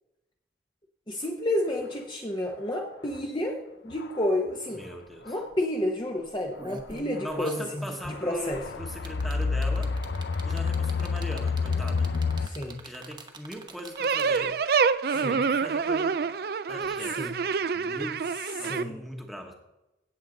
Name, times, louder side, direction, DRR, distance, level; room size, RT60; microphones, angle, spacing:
voice 1, 1.1-3.6 3.8-4.8 5.2-8.6 12.4-12.8 15.1-15.4 17.1-17.3 18.6-19.1, left 1 dB, 25° left, 1 dB, 0.9 m, -30 dB
sound 1, 3.1-3.2 3.9-4.3 5.3-5.4 7.2-7.5 8.0-12.5, left 4 dB, 80° left, 0.6 m, -29 dB
voice 2, 4.7-5.4 7.2-10.0 10.4-12.1 12.8-14.6 15.1-16.2 16.7-19.5, equal, ahead, 2 dB, 1.2 m, -40 dB
sound 2, 5.1-5.2 5.5-5.7 6.3-14.7 15.9-16.0, right 2 dB, 25° right, 1.0 m, -45 dB
sound 3, 14.0-18.8, right 5 dB, 55° right, 0.4 m, -27 dB
17.0 x 7.4 x 3.9 m, 0.97 s
head